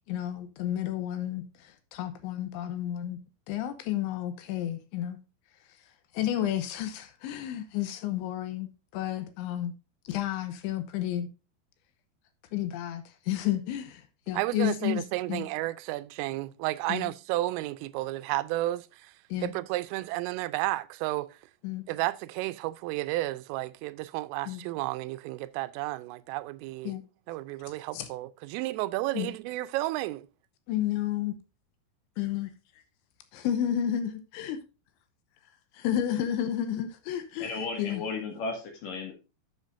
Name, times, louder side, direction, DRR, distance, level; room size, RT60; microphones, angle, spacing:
voice 1, 0.1-3.2 3.5-5.2 6.1-9.7 10.1-11.3 12.5-15.5 16.9-17.1 19.3-19.5 21.6-21.8 24.5-24.6 26.8-27.0 27.9-28.1 29.1-29.3 30.7-31.3 32.2-32.5 33.3-34.6 35.7-37.5 37.8-38.0, left 11 dB, 80° left, 3.1 m, -31 dB
voice 2, 14.3-18.8 19.4-21.3 21.9-26.9 27.3-30.2, right 17 dB, 90° right, 3.2 m, -32 dB
voice 3, 37.4-39.1, left 4 dB, 55° left, 2.9 m, -34 dB
12.0 x 7.6 x 2.6 m
omnidirectional pair, 5.7 m